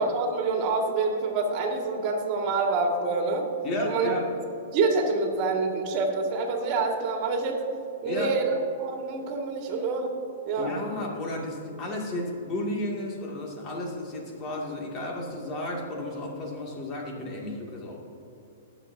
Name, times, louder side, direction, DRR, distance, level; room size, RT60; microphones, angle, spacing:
voice 1, 0.0-3.5 3.8-4.1 4.7-7.6 8.0-10.1 10.4-10.8, right 3 dB, 40° right, 2 dB, 1.9 m, -26 dB
voice 2, 3.6-4.2 8.1-8.3 10.6-18.0, left 1 dB, 30° left, -1 dB, 2.2 m, -33 dB
20.0 x 7.1 x 2.7 m, 2.7 s
hypercardioid pair, 120°, 0 cm